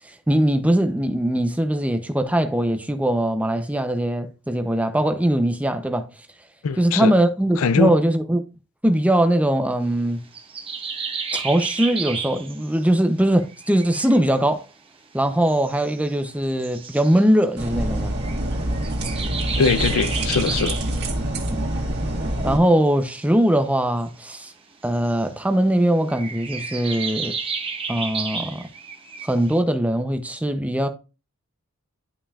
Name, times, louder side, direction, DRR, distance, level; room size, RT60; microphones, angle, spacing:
voice 1, 0.3-6.1 6.8-8.4 8.8-10.2 11.3-14.6 15.1-18.1 21.5-21.6 22.4-24.5 24.8-27.4 27.9-28.6 29.2-30.9, right 1 dB, 5° right, 0.6 m, -21 dB
voice 2, 6.6-7.1 7.6-7.9 19.6-20.8, left 5 dB, 90° left, 0.5 m, -21 dB
sound 1, 10.3-12.8 13.4-14.2 15.5-16.1 16.5-17.3 18.2-21.0 23.1-23.2 24.8-25.2 26.1-29.6, right 5 dB, 25° right, 1.0 m, -32 dB
sound 2, 17.6-22.6, right 1 dB, 55° right, 1.9 m, -26 dB
11.0 x 5.4 x 2.4 m
head